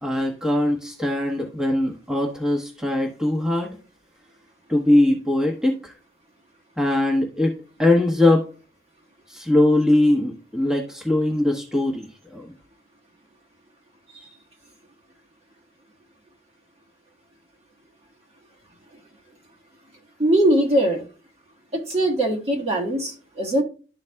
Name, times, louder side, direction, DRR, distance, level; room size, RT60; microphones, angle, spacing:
voice 1, 0.0-3.8 4.7-5.9 6.8-7.5 7.8-8.4 9.3-12.5, left 1 dB, 5° right, -1 dB, 1.0 m, -21 dB
voice 2, 20.2-21.0 21.7-23.6, right 1 dB, 35° right, 0 dB, 1.3 m, -21 dB
12.0 x 4.0 x 2.2 m, 0.36 s
head